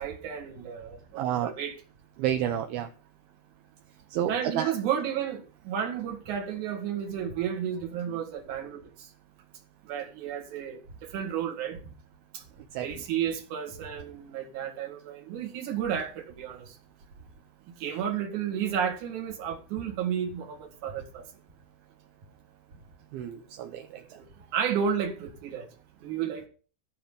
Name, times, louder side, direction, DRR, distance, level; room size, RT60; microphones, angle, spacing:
voice 1, 0.0-1.8 4.3-5.4 5.7-8.8 9.9-11.8 12.8-16.7 17.8-21.2 23.9-24.2 24.5-25.7 26.0-26.5, right 8 dB, 55° right, 3.1 m, -32 dB
voice 2, 1.2-1.5 2.2-2.9 4.1-4.7 12.7-12.9 23.1-24.0, right 10 dB, 80° right, 2.6 m, -30 dB
13.5 x 5.6 x 7.1 m
omnidirectional pair, 4.7 m